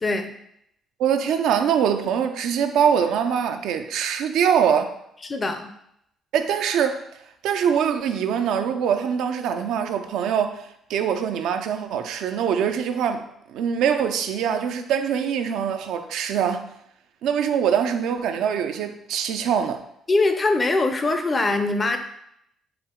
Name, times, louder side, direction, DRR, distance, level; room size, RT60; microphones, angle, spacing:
voice 1, 0.0-0.3 5.2-5.7 20.1-22.0, left 2 dB, 35° left, 6 dB, 0.5 m, -22 dB
voice 2, 1.0-5.0 6.3-7.0 7.4-10.6 10.9-16.7 17.2-19.8, right 8 dB, 80° right, 7 dB, 0.3 m, -23 dB
4.4 x 2.0 x 3.7 m, 0.75 s
supercardioid pair, 75°, 0 cm